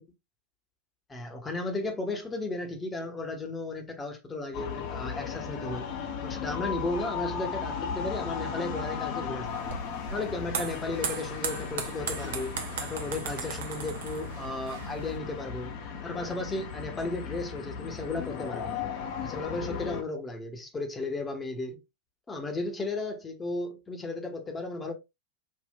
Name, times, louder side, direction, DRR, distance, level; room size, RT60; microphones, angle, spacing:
voice 1, 1.1-5.9 6.2-9.7 10.1-15.7 16.0-18.9 19.2-21.8 22.3-24.9, left 2 dB, 15° left, 1.0 m, -35 dB
sound 1, 4.5-20.0, left 6 dB, 45° left, 0.9 m, -36 dB
sound 2, 9.4-15.2, right 7 dB, 55° right, 0.6 m, -37 dB
5.5 x 2.6 x 2.2 m
figure-of-eight pair, 90°, 0 cm